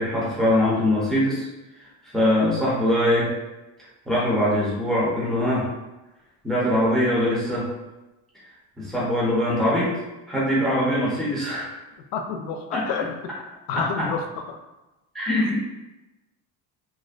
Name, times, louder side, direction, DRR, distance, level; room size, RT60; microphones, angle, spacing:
voice 1, 0.0-1.5 1.8-3.3 4.1-5.7 6.4-7.7 8.8-9.9 10.3-11.7 12.7-12.8 13.8-14.1 15.1-15.6, left 1 dB, ahead, -7 dB, 0.6 m, -22 dB
voice 2, 12.1-13.1 13.7-14.6, left 6 dB, 80° left, 5 dB, 0.5 m, -29 dB
2.4 x 2.1 x 2.4 m, 1.0 s
cardioid pair, 120°, 40 cm